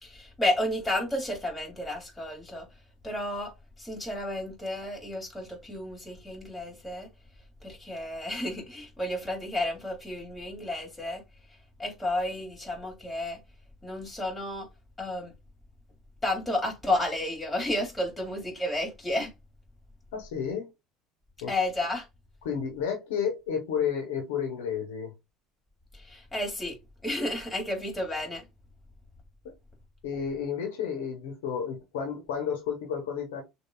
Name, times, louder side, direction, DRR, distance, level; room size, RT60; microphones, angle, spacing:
voice 1, 0.0-2.7 3.0-3.5 3.8-7.1 7.6-11.2 11.8-13.4 13.8-14.7 15.0-15.3 16.2-19.3 21.5-22.1 25.9-26.8 27.0-28.4, left 1 dB, 15° left, 2.7 m, -31 dB
voice 2, 20.1-20.7 21.4-21.5 22.4-25.1 29.4-29.5 30.0-33.4, left 7 dB, 75° left, 1.1 m, -31 dB
6.5 x 2.6 x 2.3 m
hypercardioid pair, 70°, 0 cm